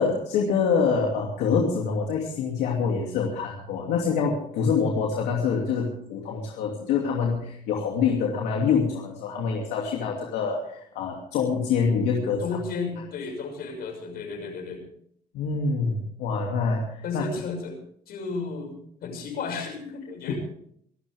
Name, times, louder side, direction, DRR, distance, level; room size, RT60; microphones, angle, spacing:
voice 1, 0.0-12.6 15.3-17.2 20.3-20.4, left 5 dB, 85° left, -1 dB, 2.7 m, -25 dB
voice 2, 12.4-14.9 17.0-17.8 18.1-20.4, left 4 dB, 65° left, 4 dB, 6.3 m, -33 dB
25.5 x 12.5 x 3.6 m, 0.67 s
cardioid pair, 110°, 17 cm